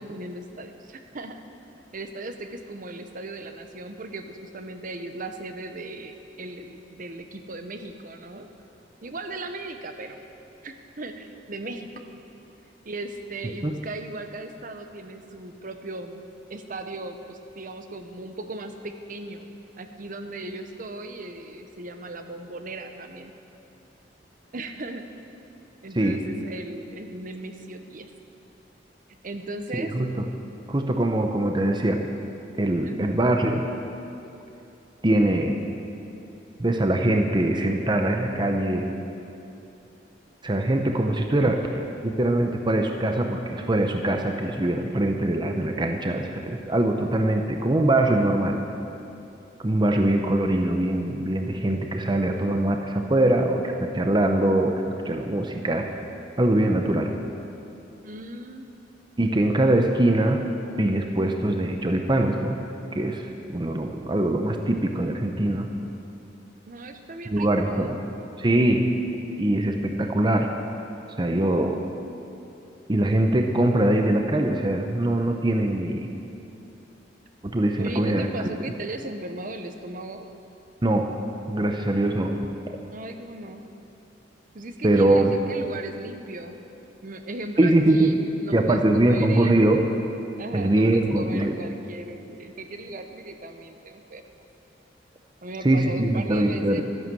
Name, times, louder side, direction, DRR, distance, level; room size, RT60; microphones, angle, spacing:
voice 1, 0.0-1.4 1.9-8.5 9.0-10.2 10.6-11.9 12.8-16.2 16.5-19.5 19.8-23.3 24.5-25.1 25.8-28.1 29.2-29.9 32.8-33.2 58.0-58.7 66.7-68.0 77.8-80.3 82.9-83.6 84.5-86.5 87.0-89.8 90.4-94.2 95.4-96.8, right 2 dB, 50° right, 7 dB, 0.9 m, -37 dB
voice 2, 29.7-30.2 30.7-32.0 32.5-33.6 35.0-35.6 36.6-38.9 40.4-41.6 42.0-48.6 49.6-55.9 56.4-57.1 59.2-60.5 60.8-62.6 62.9-65.7 67.3-67.9 68.4-68.9 69.4-70.5 71.2-71.8 72.9-76.1 77.4-78.3 80.8-81.1 81.5-82.4 84.8-85.4 87.6-88.1 88.5-89.9 90.5-91.5 95.6-96.8, right 1 dB, 25° right, 3 dB, 0.8 m, -22 dB
13.0 x 10.5 x 7.6 m, 2.8 s
head